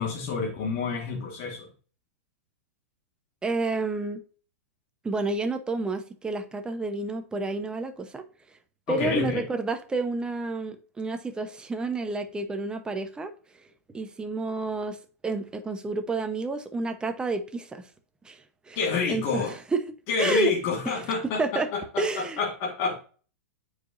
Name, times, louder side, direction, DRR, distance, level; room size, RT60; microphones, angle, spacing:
voice 1, 0.0-1.7 8.9-9.4 18.7-19.5 20.1-21.4 21.7-23.0, left 5 dB, 45° left, 1.6 m, -28 dB
voice 2, 3.4-4.2 5.0-8.2 8.9-13.3 13.9-15.0 15.2-17.8 18.2-18.8 19.1-19.9 20.2-20.5 20.8-21.7 22.0-22.4, right 3 dB, 10° right, 0.8 m, -30 dB
8.4 x 4.9 x 2.6 m
hypercardioid pair, 125°, 8 cm